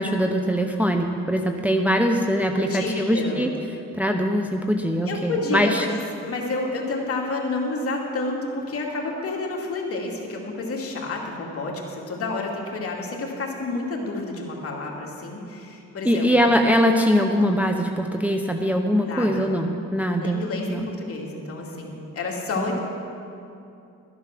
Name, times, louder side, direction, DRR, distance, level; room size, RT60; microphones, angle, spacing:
voice 1, 0.0-3.5 4.0-5.8 16.0-20.8 22.6-22.7, equal, 5° right, 3 dB, 0.7 m, -22 dB
voice 2, 2.5-3.5 5.1-6.0 6.2-16.6 19.0-19.5 20.2-22.8, left 2 dB, 50° left, -1 dB, 2.6 m, -30 dB
13.0 x 11.0 x 6.0 m, 2.6 s
cardioid pair, 90°, 30 cm